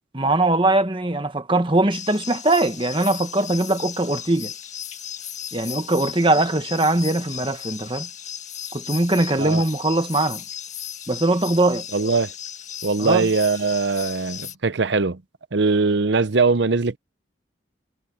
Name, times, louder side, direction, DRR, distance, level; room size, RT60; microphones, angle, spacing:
voice 1, 0.1-4.5 5.5-8.1 8.7-10.4 11.1-11.8 13.0-13.3, right 2 dB, 25° right, 1.4 m, -21 dB
sound 1, 1.9-14.5, left 9 dB, 40° left, 1.8 m, -36 dB
voice 2, 11.9-12.3 12.8-15.2 15.5-17.0, right 4 dB, 65° right, 0.8 m, -21 dB
head